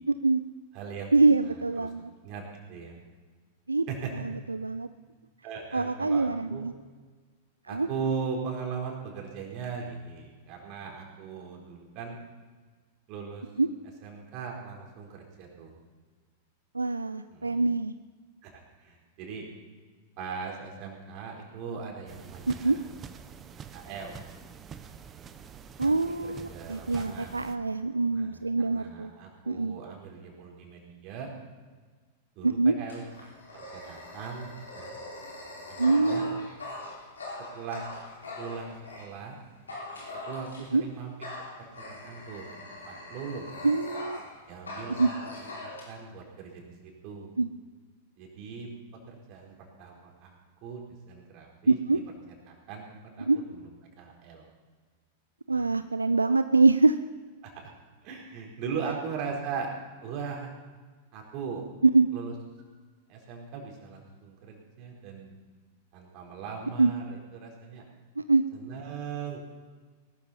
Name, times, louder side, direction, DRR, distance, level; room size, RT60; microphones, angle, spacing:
voice 1, 0.1-0.4 1.1-2.1 3.7-3.8 4.1-4.9 5.7-6.7 7.7-7.9 13.6-13.7 16.7-17.9 22.5-22.8 25.8-29.1 29.5-29.8 32.4-32.8 35.8-36.5 40.7-40.8 43.6-44.2 45.0-45.1 47.4-47.5 51.7-52.0 53.2-53.4 55.5-57.0 61.8-62.1 66.8-66.9 68.2-68.4, right 3 dB, 90° right, 12 dB, 0.4 m, -24 dB
voice 2, 0.7-1.1 1.8-1.9 2.2-2.4 2.7-3.0 3.9-4.1 5.4-6.6 7.7-12.2 13.1-13.5 14.0-15.7 17.3-17.6 18.4-19.4 20.2-22.8 23.7-24.2 25.8-25.9 26.2-27.4 28.1-28.4 28.7-31.3 32.4-33.0 33.5-35.0 35.7-36.3 37.5-37.9 38.4-39.4 40.3-41.1 41.6-43.6 44.5-45.2 45.6-47.3 48.2-48.7 49.1-50.4 50.6-50.8 51.1-51.8 52.5-53.3 53.6-53.7 54.0-54.5 55.5-55.7 57.4-57.7 58.0-59.7 60.0-60.5 61.1-61.6 62.1-62.3 63.1-65.4 65.9-67.8 68.5-69.4, right 6 dB, 45° right, 0 dB, 4.2 m, -39 dB
sound 1, 22.1-27.6, right 7 dB, 25° right, 1.0 m, -46 dB
Dog, 32.9-39.1 39.7-40.8 41.2-44.3 44.6-45.8, left 2 dB, 85° left, 5.3 m, -41 dB
19.5 x 13.0 x 4.3 m, 1.4 s
figure-of-eight pair, 95°, 0 cm